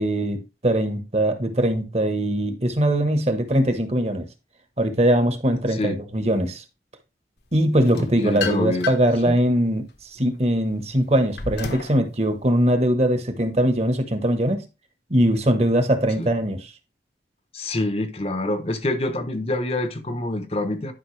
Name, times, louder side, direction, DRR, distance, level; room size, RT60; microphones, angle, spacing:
voice 1, 0.0-4.3 4.8-6.6 7.5-9.8 10.1-14.6 15.1-16.7, right 1 dB, 35° right, 1.2 m, -21 dB
sound 1, 7.8-9.2 9.7-12.0, left 5 dB, 70° left, 1.2 m, -33 dB
voice 2, 7.9-8.9 9.3-9.4 16.2-16.3 17.5-20.9, left 1 dB, 35° left, 0.8 m, -26 dB
11.0 x 5.5 x 3.2 m
head